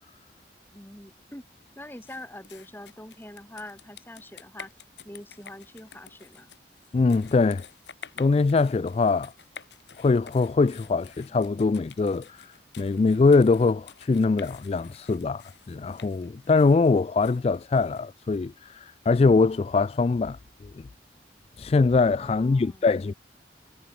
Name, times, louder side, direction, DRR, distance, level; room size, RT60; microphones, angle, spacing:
voice 1, 0.7-1.4 1.8-4.7 5.0-6.5 22.2-22.9, left 1 dB, 10° left, 3.0 m, -44 dB
sound 1, 2.0-18.4, left 7 dB, 80° left, 2.7 m, -49 dB
voice 2, 6.9-7.7 8.2-9.3 10.0-20.9 21.6-23.1, left 4 dB, 35° left, 0.3 m, -23 dB
head